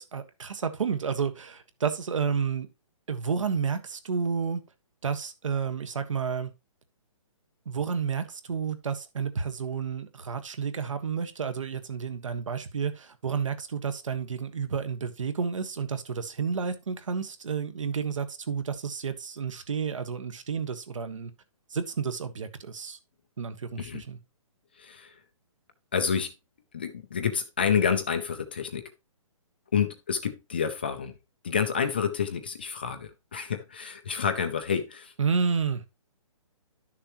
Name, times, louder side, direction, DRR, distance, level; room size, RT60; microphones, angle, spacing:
voice 1, 0.0-2.7 3.1-4.6 5.0-6.5 7.6-21.3 21.7-23.0 23.4-24.2 35.2-35.8, right 6 dB, 65° right, 1.6 m, -31 dB
voice 2, 24.8-25.2 25.9-26.3 26.7-28.8 29.7-31.2 31.4-35.1, left 7 dB, 20° left, 0.5 m, -29 dB
11.5 x 6.6 x 3.0 m
hypercardioid pair, 180°, 18 cm